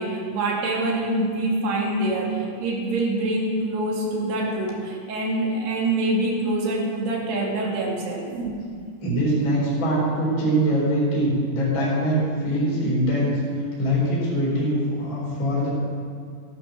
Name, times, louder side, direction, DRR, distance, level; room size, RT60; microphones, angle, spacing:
voice 1, 0.0-8.3, right 2 dB, 60° right, -2 dB, 4.2 m, -25 dB
voice 2, 9.0-13.4 13.8-15.7, right 1 dB, 25° left, -7 dB, 4.7 m, -23 dB
13.5 x 12.0 x 6.5 m, 2.3 s
omnidirectional pair, 5.8 m